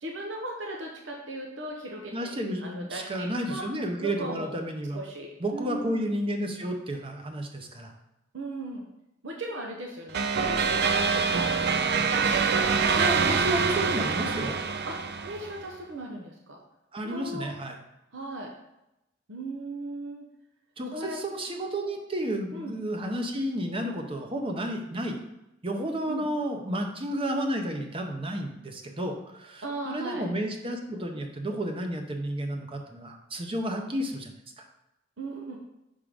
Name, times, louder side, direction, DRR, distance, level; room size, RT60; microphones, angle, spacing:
voice 1, 0.0-2.1 2.6-3.6 4.0-4.5 4.9-6.0 8.3-8.8 9.2-12.2 14.9-16.6 17.0-17.5 18.1-18.5 19.3-20.2 20.9-21.2 22.5-22.7 26.1-26.3 29.6-30.2 35.2-35.6, right 2 dB, 70° right, 0 dB, 0.9 m, -37 dB
voice 2, 2.1-5.0 5.4-7.9 13.0-14.6 16.9-17.8 20.8-25.2 25.6-34.3, right 1 dB, 30° right, 4 dB, 0.8 m, -31 dB
sound 1, 10.1-15.6, right 5 dB, 55° right, 0.4 m, -25 dB
6.1 x 3.7 x 5.0 m, 0.89 s
head